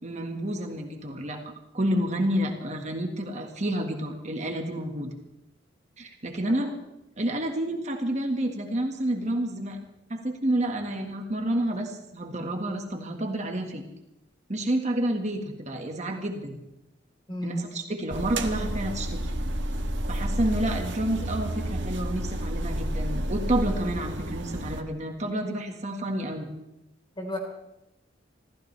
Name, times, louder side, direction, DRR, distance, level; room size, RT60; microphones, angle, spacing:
voice 1, 0.0-1.4 1.7-5.2 6.0-6.7 7.2-9.8 10.1-13.8 14.5-16.6 17.4-19.2 20.1-26.5, right 1 dB, 40° right, 3 dB, 1.7 m, -29 dB
voice 2, 17.3-17.6 27.2-27.4, left 1 dB, 25° left, 0 dB, 4.2 m, -33 dB
sound 1, 18.1-24.8, right 1 dB, 70° right, 1.4 m, -30 dB
26.0 x 15.5 x 3.4 m, 0.88 s
head